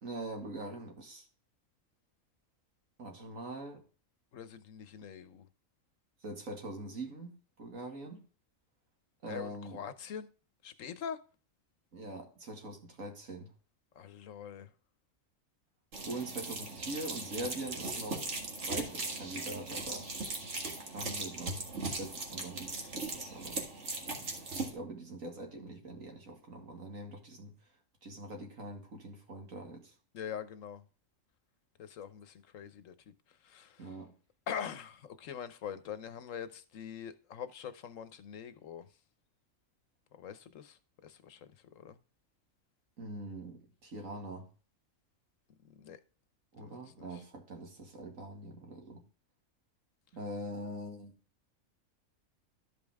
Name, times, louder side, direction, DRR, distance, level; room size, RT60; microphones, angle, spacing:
voice 1, 0.0-1.3 3.0-3.8 6.2-8.2 9.2-9.8 11.9-13.5 16.1-18.3 18.7-20.1 20.9-23.7 24.7-27.5 28.0-29.9 33.8-34.1 43.0-44.5 46.5-49.0 50.1-51.1, right 1 dB, 75° right, 2.6 m, -43 dB
voice 2, 4.3-5.5 9.3-10.3 10.6-11.2 13.9-14.7 30.1-30.8 31.8-33.9 34.5-38.9 40.1-42.0 45.6-46.0 46.6-47.1, left 8 dB, 70° left, 1.2 m, -44 dB
sound 1, 15.9-24.7, right 3 dB, 60° right, 2.1 m, -39 dB
12.5 x 5.4 x 3.5 m
omnidirectional pair, 1.4 m